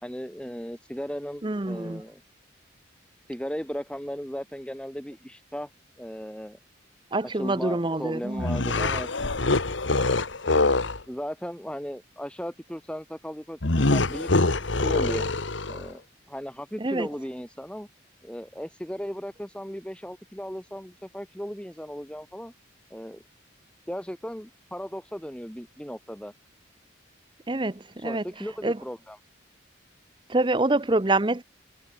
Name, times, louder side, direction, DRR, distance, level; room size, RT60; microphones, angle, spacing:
voice 1, 0.0-2.2 3.3-5.7 6.0-6.6 7.2-9.1 11.1-15.2 15.7-16.0 16.3-17.9 18.2-22.5 22.9-23.2 23.9-26.3 28.0-29.2, equal, 5° left, 2.5 m, -36 dB
voice 2, 1.4-2.0 7.1-8.5 16.8-17.1 27.5-28.2 28.6-28.8 30.3-31.4, right 2 dB, 25° right, 0.7 m, -26 dB
sound 1, 8.4-11.0 13.6-15.9, left 2 dB, 70° left, 1.6 m, -24 dB
head